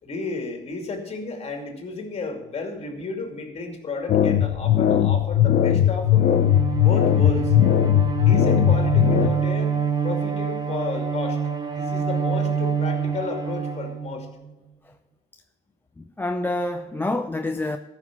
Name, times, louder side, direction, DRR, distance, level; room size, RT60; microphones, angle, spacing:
voice 1, 0.0-6.3 6.8-7.5 8.2-9.8 10.0-11.4 11.7-14.3, left 3 dB, 35° left, 4 dB, 2.5 m, -32 dB
sound 1, 4.1-9.3, left 11 dB, 60° left, 0.7 m, -19 dB
Bowed string instrument, 6.1-14.5, right 6 dB, 25° right, 1.1 m, -26 dB
voice 2, 16.0-17.8, left 2 dB, 10° left, 6 dB, 0.5 m, -27 dB
14.0 x 6.0 x 5.9 m, 1.1 s
cardioid pair, 110°, 17 cm